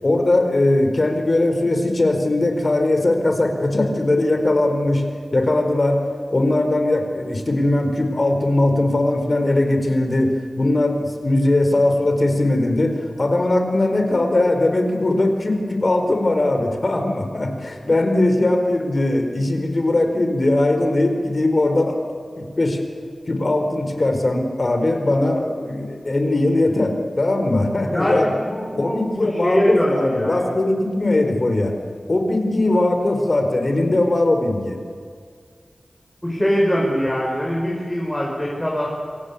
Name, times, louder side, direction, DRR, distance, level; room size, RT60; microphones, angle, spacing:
voice 1, 0.0-5.0 5.3-6.0 6.3-22.0 22.4-22.8 23.3-28.3 28.8-31.7 32.1-34.8, left 2 dB, 45° left, 5 dB, 4.4 m, -20 dB
voice 2, 27.9-30.5 36.2-38.9, equal, 10° left, -2 dB, 5.3 m, -22 dB
28.0 x 24.5 x 8.5 m, 2.1 s
wide cardioid pair, 90°, 0 cm